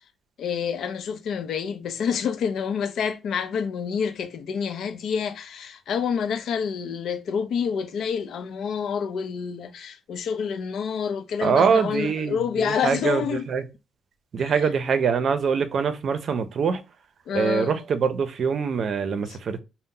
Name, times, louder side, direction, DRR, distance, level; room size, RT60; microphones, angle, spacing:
voice 1, 0.4-13.5 14.4-14.7 17.3-17.8 19.3-19.4, left 7 dB, 70° left, 0.5 m, -28 dB
voice 2, 11.4-13.2 13.5-13.6 14.3-16.8 17.3-19.6, right 6 dB, 55° right, 0.5 m, -24 dB
2.7 x 2.1 x 3.6 m
cardioid pair, 90°, 0 cm